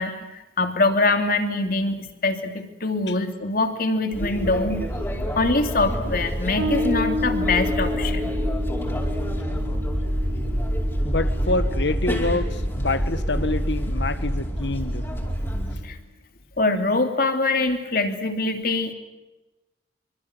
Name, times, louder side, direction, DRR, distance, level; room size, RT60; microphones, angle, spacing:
voice 1, 0.0-4.9 5.4-8.3 15.5-16.0 16.6-18.9, left 2 dB, 55° left, 6 dB, 3.0 m, -24 dB
sound 1, 4.1-15.7, equal, 15° left, 5.0 m, -27 dB
Bass guitar, 6.6-13.7, left 2 dB, 80° right, 4.3 m, -32 dB
voice 2, 11.0-15.1, left 2 dB, 75° left, 11 dB, 1.8 m, -26 dB
26.0 x 25.0 x 8.1 m, 1.1 s
head